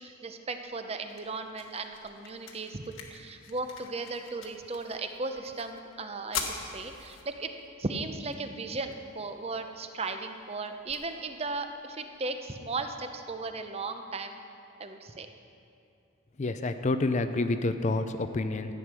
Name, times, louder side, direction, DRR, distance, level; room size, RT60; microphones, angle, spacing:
voice 1, 0.0-7.5 7.8-14.4 14.8-15.3, right 3 dB, 30° right, 7 dB, 0.6 m, -36 dB
sound 1, 0.6-12.6, left 5 dB, 65° left, 1.3 m, -45 dB
voice 2, 16.4-18.7, left 2 dB, 35° left, 9 dB, 0.4 m, -28 dB
13.5 x 9.2 x 6.2 m, 2.7 s
head